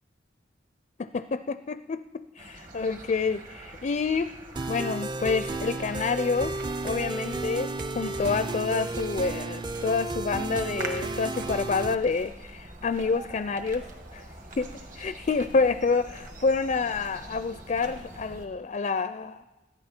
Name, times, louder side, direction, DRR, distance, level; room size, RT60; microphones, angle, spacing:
voice 1, 1.0-4.3 4.7-6.5 6.8-13.8 14.1-14.2 14.6-14.7 15.0-19.5, left 4 dB, 40° left, 12 dB, 0.4 m, -28 dB
sound 1, 2.4-18.5, right 2 dB, 50° right, 1.9 m, -44 dB
sound 2, 4.6-11.9, right 2 dB, 25° right, 0.5 m, -33 dB
20.5 x 14.5 x 4.4 m, 1.1 s
head